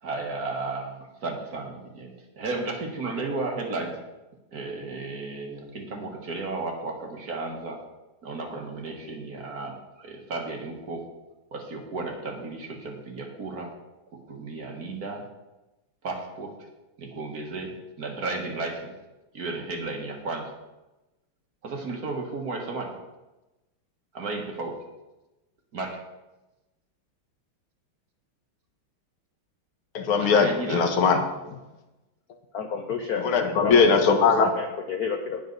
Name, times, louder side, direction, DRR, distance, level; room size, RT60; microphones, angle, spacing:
voice 1, 0.0-3.9 4.5-7.8 8.2-11.0 11.5-13.7 14.3-15.2 16.0-16.5 17.0-18.9 19.3-20.5 21.6-22.9 24.1-24.7 25.7-26.0 30.1-30.8, right 3 dB, 45° right, 1 dB, 1.8 m, -33 dB
voice 2, 29.9-31.2 33.2-34.5, left 5 dB, 80° left, 6 dB, 2.0 m, -20 dB
voice 3, 32.5-33.3 33.6-34.2 34.6-35.4, left 6 dB, 60° left, 5 dB, 1.0 m, -30 dB
18.0 x 6.4 x 4.0 m, 1.0 s
omnidirectional pair, 2.3 m